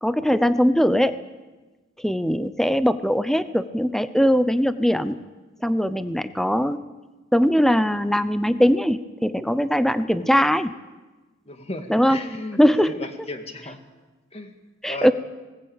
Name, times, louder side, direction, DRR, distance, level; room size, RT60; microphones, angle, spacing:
voice 1, 0.0-1.1 2.0-5.2 5.6-6.8 7.3-10.7 11.9-12.2 12.6-12.9 14.8-15.1, equal, ahead, 12 dB, 0.7 m, -20 dB
voice 2, 11.5-12.6 12.9-13.8 14.3-14.5 14.9-15.1, left 2 dB, 30° left, 6 dB, 2.0 m, -35 dB
20.5 x 18.0 x 8.9 m, 1.2 s
head